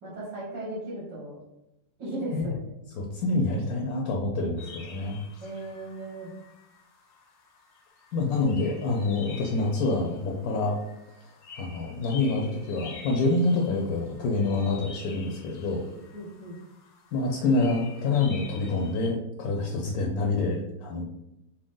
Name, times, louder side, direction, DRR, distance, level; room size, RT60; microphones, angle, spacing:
voice 1, 0.0-1.4 2.0-2.5 5.4-6.3 16.1-16.6, right 1 dB, 75° right, -9 dB, 2.3 m, -36 dB
voice 2, 3.0-5.2 8.1-10.8 11.6-15.8 17.1-21.1, left 3 dB, 65° left, 0 dB, 1.0 m, -27 dB
sound 1, 4.6-19.1, left 4 dB, 85° left, 1.5 m, -49 dB
6.1 x 2.1 x 3.7 m, 0.87 s
omnidirectional pair, 1.9 m